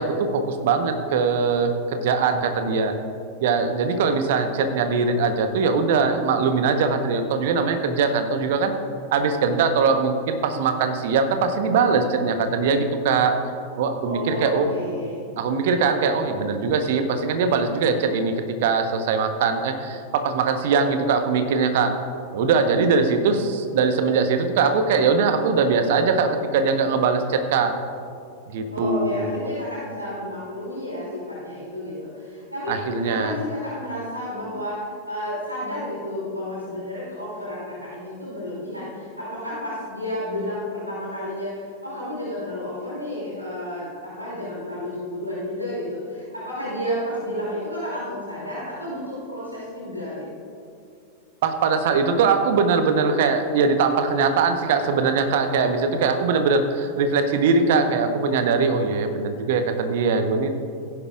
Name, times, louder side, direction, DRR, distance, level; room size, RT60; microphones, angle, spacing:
voice 1, 0.0-2.9 3.4-8.7 9.1-13.3 13.8-14.8 15.4-18.3 18.6-21.9 22.3-27.7 28.5-29.5 32.7-33.3 51.4-60.5, right 5 dB, 55° right, 7 dB, 1.0 m, -21 dB
voice 2, 14.0-15.2 28.7-41.6 41.8-50.3, left 1 dB, 85° right, -7 dB, 2.6 m, -31 dB
16.0 x 10.5 x 2.4 m, 2.4 s
figure-of-eight pair, 90°, 0 cm